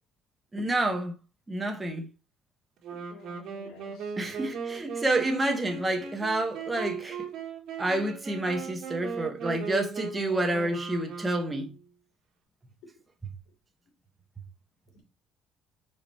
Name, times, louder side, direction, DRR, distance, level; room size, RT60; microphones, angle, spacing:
voice 1, 0.5-1.1 1.5-2.1 4.2-7.2 7.8-11.7, right 2 dB, 15° right, 1.2 m, -29 dB
Wind instrument woodwind instrument, 2.8-11.9, right 5 dB, 55° right, 1.8 m, -38 dB
voice 2, 3.1-4.1 6.7-6.8 14.9-15.0, left 2 dB, 85° left, 3.3 m, -51 dB
5.2 x 4.7 x 4.3 m
cardioid pair, 155°, 0 cm